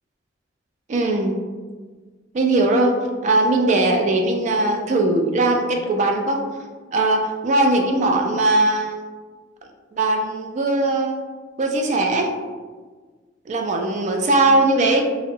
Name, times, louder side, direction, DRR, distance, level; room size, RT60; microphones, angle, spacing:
voice 1, 0.9-1.4 2.3-3.0 3.2-6.4 6.9-9.0 10.0-11.2 11.6-12.3 13.5-15.0, right 2 dB, 40° right, 2 dB, 0.3 m, -19 dB
2.6 x 2.0 x 2.7 m, 1.4 s
head